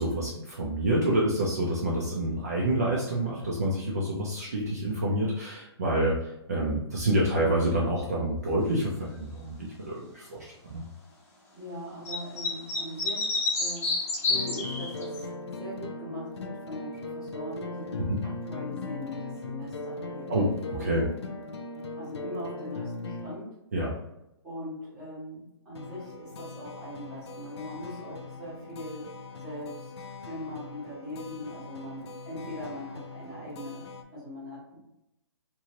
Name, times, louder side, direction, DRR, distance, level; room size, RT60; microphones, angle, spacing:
voice 1, 0.0-10.8 18.1-18.2 20.3-21.0 23.7-24.0, right 1 dB, 35° right, -4 dB, 0.4 m, -28 dB
voice 2, 11.5-15.2 15.6-21.1 22.0-23.6 24.4-33.8 34.1-34.9, equal, 5° right, -13 dB, 0.8 m, -41 dB
sound 1, 12.0-15.2, left 3 dB, 30° left, 0.7 m, -28 dB
sound 2, 14.3-23.4 25.8-34.0, left 3 dB, 65° left, 0.5 m, -39 dB
2.8 x 2.6 x 2.8 m, 0.88 s
hypercardioid pair, 180°, 15 cm